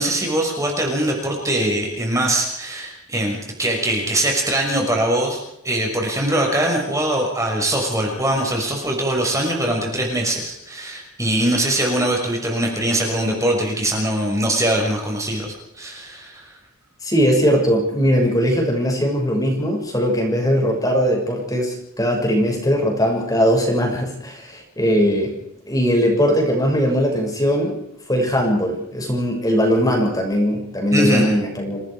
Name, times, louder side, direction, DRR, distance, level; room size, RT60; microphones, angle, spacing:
voice 1, 0.0-15.5 15.8-16.4 30.9-31.3, right 1 dB, 15° right, 0 dB, 5.9 m, -22 dB
voice 2, 17.0-25.3 25.7-27.8 28.1-31.8, equal, 15° left, 1 dB, 6.4 m, -19 dB
28.5 x 19.5 x 5.0 m, 0.78 s
head